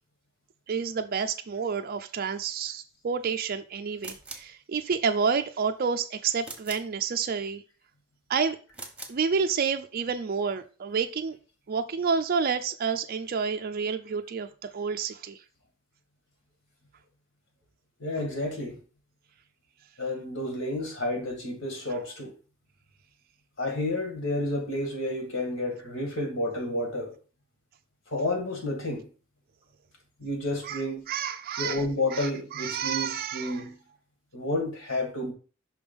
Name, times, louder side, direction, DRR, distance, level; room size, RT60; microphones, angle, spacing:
voice 1, 0.7-7.6 8.3-8.6 9.1-11.4 11.7-15.4 30.6-30.8 31.1-31.8 32.1-33.6, right 6 dB, 45° right, 0.4 m, -29 dB
sound 1, 4.0-4.6 6.4-7.0 8.7-9.2, right 3 dB, 5° right, 1.1 m, -42 dB
voice 2, 18.0-18.8 20.0-22.3 23.6-27.1 28.1-29.1 30.2-31.1 31.6-33.8 34.3-35.3, left 1 dB, 70° left, 2.0 m, -30 dB
5.8 x 3.4 x 5.2 m
head